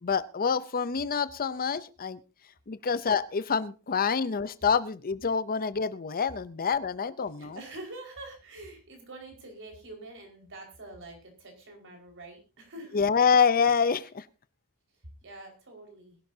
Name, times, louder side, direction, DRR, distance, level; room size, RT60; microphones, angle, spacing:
voice 1, 0.0-2.2 2.7-7.6 12.9-14.3, left 6 dB, 40° left, 15 dB, 0.6 m, -26 dB
voice 2, 7.4-13.0 15.2-16.2, right 2 dB, 60° right, 2 dB, 4.8 m, -45 dB
21.0 x 11.5 x 2.7 m, 0.33 s
head